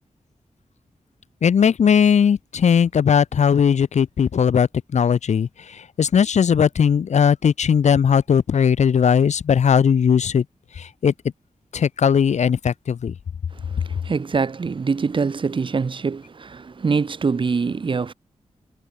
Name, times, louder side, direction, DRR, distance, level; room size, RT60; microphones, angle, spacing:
voice 1, 1.4-5.5 6.0-10.4 11.0-11.1 11.7-13.1, left 7 dB, 80° left, 2.1 m, -18 dB
voice 2, 13.7-18.1, right 5 dB, 45° right, 4.3 m, -24 dB
wide cardioid pair, 145°, 12 cm